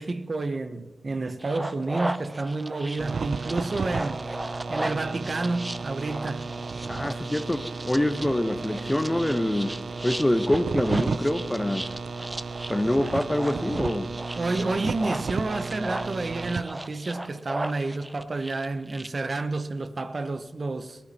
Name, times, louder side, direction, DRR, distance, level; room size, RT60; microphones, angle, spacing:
voice 1, 0.0-4.3 4.7-6.5 14.4-21.0, right 3 dB, 55° right, 0.8 m, -30 dB
sound 1, 1.4-19.1, right 1 dB, 20° right, 0.7 m, -37 dB
sound 2, 3.0-16.6, right 4 dB, 75° right, 0.4 m, -34 dB
voice 2, 6.9-9.7 10.0-11.9 12.7-14.1, left 1 dB, 15° left, 0.9 m, -25 dB
18.0 x 13.0 x 4.2 m
cardioid pair, 55°, 0 cm